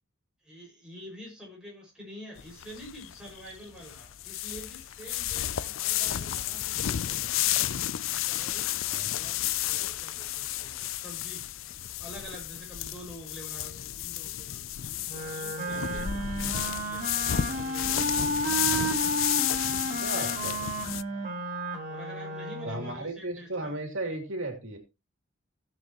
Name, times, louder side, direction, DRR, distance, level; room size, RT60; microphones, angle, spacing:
voice 1, 0.4-7.5 8.2-8.7 9.2-11.5 12.0-14.7 15.1-18.3 19.9-20.5 21.1-21.3 21.9-23.8, equal, 5° right, -3 dB, 5.9 m, -47 dB
sound 1, 2.4-21.0, left 12 dB, 75° left, 0.5 m, -32 dB
Wind instrument woodwind instrument, 15.1-22.9, right 1 dB, 35° right, 3.8 m, -32 dB
voice 2, 20.0-20.7 22.6-24.8, right 2 dB, 70° right, 3 dB, 2.8 m, -35 dB
17.0 x 7.8 x 3.0 m, 0.26 s
head